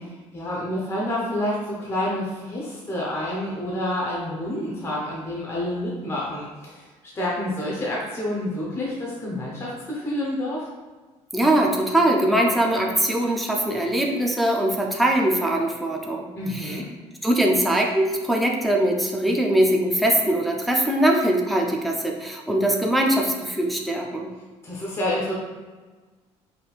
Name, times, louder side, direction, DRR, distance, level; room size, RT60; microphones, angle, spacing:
voice 1, 0.0-6.9 7.2-10.7 16.4-16.8 24.6-25.3, left 1 dB, 20° left, -5 dB, 0.8 m, -28 dB
voice 2, 11.3-16.8 17.2-24.3, right 1 dB, ahead, -1 dB, 0.4 m, -22 dB
4.9 x 3.3 x 2.4 m, 1.3 s
cardioid pair, 150°, 12 cm